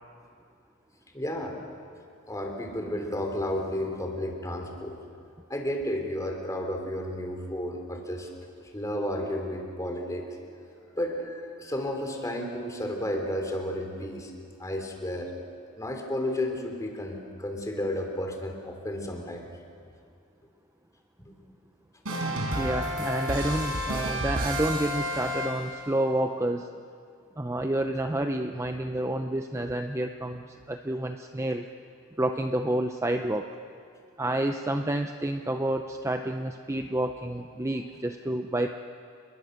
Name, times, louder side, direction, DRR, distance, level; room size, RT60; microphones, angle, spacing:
voice 1, 1.1-1.5 2.3-5.0 5.5-8.3 8.6-10.3 11.0-14.3 14.6-15.3 15.8-19.5 21.2-21.3, left 1 dB, 15° left, 2 dB, 3.2 m, -32 dB
sound 1, 22.0-25.9, equal, 80° right, 4.7 m, -30 dB
voice 2, 22.6-26.7 27.4-31.6 32.2-33.5 34.2-38.7, right 1 dB, 15° right, 5 dB, 0.6 m, -29 dB
29.5 x 22.0 x 6.6 m, 2.3 s
head